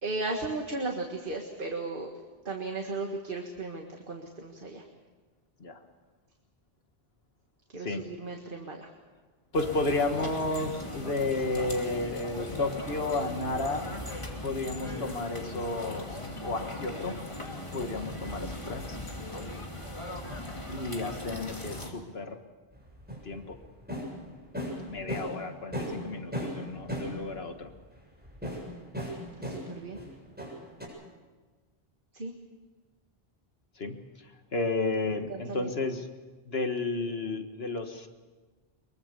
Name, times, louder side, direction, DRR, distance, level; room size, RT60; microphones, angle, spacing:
voice 1, 0.0-2.1 2.5-4.8 7.7-8.9 29.5-30.0 32.1-32.3 35.3-35.7, right 3 dB, 55° right, 2 dB, 1.9 m, -35 dB
voice 2, 9.5-13.9 14.4-16.1 16.4-17.2 17.7-19.0 19.3-19.4 20.7-22.4 23.2-23.6 24.9-27.7 33.8-34.0 34.5-36.1 36.5-38.1, left 2 dB, 70° left, 6 dB, 1.8 m, -32 dB
sound 1, 9.5-21.9, left 1 dB, 30° left, 2.8 m, -38 dB
sound 2, 22.7-25.5 25.7-27.4 28.2-30.1 30.4-30.9, equal, 10° right, 7.5 m, -36 dB
23.5 x 22.5 x 6.9 m, 1.3 s
omnidirectional pair, 1.1 m